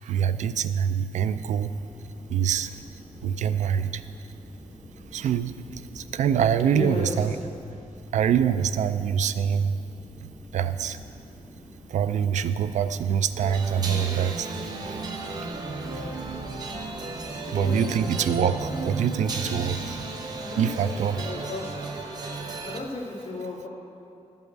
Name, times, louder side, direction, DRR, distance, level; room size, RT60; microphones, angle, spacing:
voice 1, 0.0-1.7 2.3-2.8 3.2-4.0 5.1-7.3 8.1-9.8 10.5-11.0 11.9-15.5 15.9-16.1 17.5-20.0 20.6-21.2, right 8 dB, 70° right, 12 dB, 0.4 m, -25 dB
sound 1, 1.2-18.8, left 1 dB, 10° right, 2.0 m, -47 dB
voice 2, 6.7-7.4 17.4-18.0 20.4-20.9 21.1-21.8 22.6-23.7, left 2 dB, 55° left, -3 dB, 2.1 m, -34 dB
sound 2, 13.4-22.8, right 3 dB, 30° right, 0.9 m, -34 dB
12.5 x 5.5 x 7.8 m, 2.5 s
wide cardioid pair, 170°, 13 cm